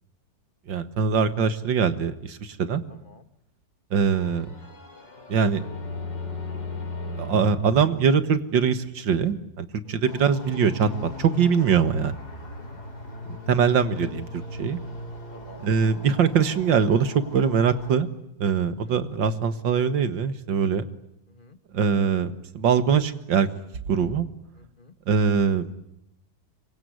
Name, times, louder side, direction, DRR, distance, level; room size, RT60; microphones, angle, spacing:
voice 1, 0.7-2.8 3.9-4.5 5.3-5.6 7.2-10.9 11.2-12.1 13.3-14.8 15.6-18.1 18.4-20.8 21.7-23.5 23.9-24.3 25.1-25.7, right 6 dB, 85° right, 12 dB, 2.3 m, -22 dB
voice 2, 2.9-3.3 9.8-10.2 12.6-12.8 15.3-15.6 18.8-19.0 21.3-21.6 24.6-24.9, left 3 dB, 30° left, 10 dB, 1.8 m, -51 dB
sound 1, 4.1-8.9, left 2 dB, 75° left, 4.7 m, -36 dB
sound 2, 10.1-18.0, left 1 dB, 60° left, 5.0 m, -38 dB
26.0 x 23.5 x 9.5 m, 0.77 s
omnidirectional pair, 2.0 m